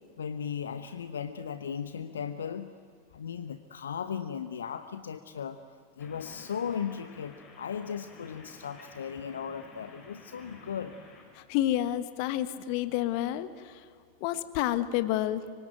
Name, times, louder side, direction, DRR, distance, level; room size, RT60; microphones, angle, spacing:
voice 1, 0.2-2.7 3.1-5.6 5.9-11.0, left 7 dB, 65° left, 11 dB, 1.0 m, -37 dB
sound 1, 6.0-11.2, left 3 dB, 25° left, 6.7 m, -52 dB
voice 2, 11.5-13.5 14.2-15.6, left 13 dB, 45° left, 12 dB, 1.4 m, -29 dB
25.0 x 24.5 x 9.2 m, 2.1 s
figure-of-eight pair, 90°, 0 cm